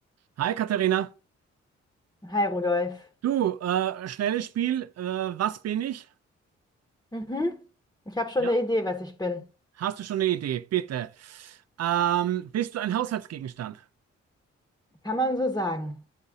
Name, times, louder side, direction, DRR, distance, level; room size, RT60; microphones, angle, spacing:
voice 1, 0.4-1.1 3.2-6.1 8.4-8.5 9.8-13.8, right 11 dB, 60° right, 0.6 m, -28 dB
voice 2, 2.2-3.1 7.1-7.6 8.1-9.4 15.0-16.0, left 1 dB, 10° left, 1.2 m, -27 dB
10.0 x 4.0 x 3.7 m
supercardioid pair, 50°, 29 cm